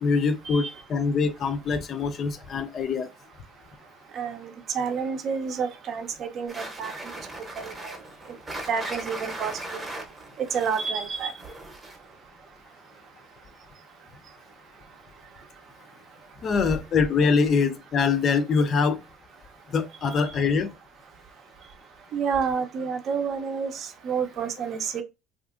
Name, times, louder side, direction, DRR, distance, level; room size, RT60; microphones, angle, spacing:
voice 1, 0.0-3.1 16.4-19.0 19.7-20.7, left 5 dB, 45° left, 0.4 m, -24 dB
voice 2, 4.1-6.9 7.6-8.0 8.7-9.8 10.5-11.3 22.1-25.0, right 6 dB, 55° right, 0.5 m, -29 dB
sound 1, 6.5-12.1, right 2 dB, 20° right, 0.8 m, -38 dB
2.7 x 2.4 x 2.4 m
supercardioid pair, 95°, 0 cm